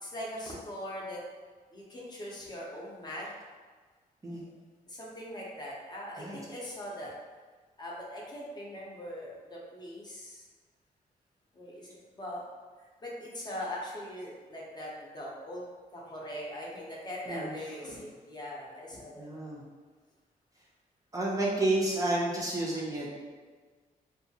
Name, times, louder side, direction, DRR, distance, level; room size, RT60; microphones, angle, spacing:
voice 1, 0.0-1.2 1.7-3.3 4.9-7.1 7.8-10.5 11.5-12.4 13.0-15.7 15.9-19.4, equal, 30° left, -4 dB, 0.5 m, -41 dB
voice 2, 17.3-17.6 19.2-19.6 21.1-23.1, right 2 dB, 20° right, -4 dB, 0.4 m, -30 dB
2.6 x 2.3 x 2.7 m, 1.4 s
wide cardioid pair, 130°, 15 cm